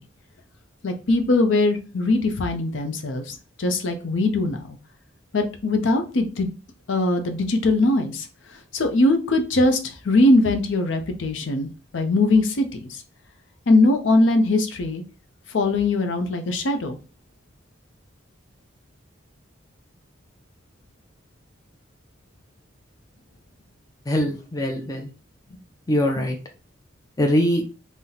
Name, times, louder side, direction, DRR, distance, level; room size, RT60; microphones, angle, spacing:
voice 1, 0.8-4.8 5.3-6.5 6.9-8.3 8.7-13.0 13.7-15.0 15.5-17.0, left 2 dB, 65° left, 6 dB, 0.5 m, -21 dB
voice 2, 24.1-25.1 25.9-26.4 27.2-27.6, equal, 15° left, 2 dB, 0.4 m, -22 dB
2.8 x 2.1 x 3.8 m, 0.33 s
head